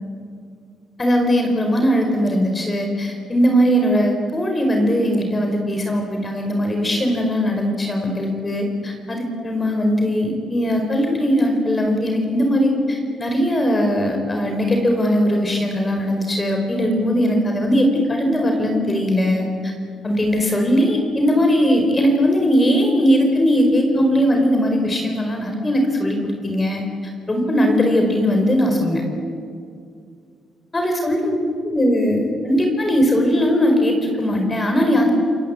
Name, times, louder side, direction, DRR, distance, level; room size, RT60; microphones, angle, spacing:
voice 1, 1.0-19.7 20.0-26.8 27.3-29.0 30.7-31.4 31.6-35.1, equal, 25° left, 3 dB, 4.8 m, -19 dB
28.5 x 22.0 x 8.5 m, 2.3 s
cardioid pair, 90°, 0 cm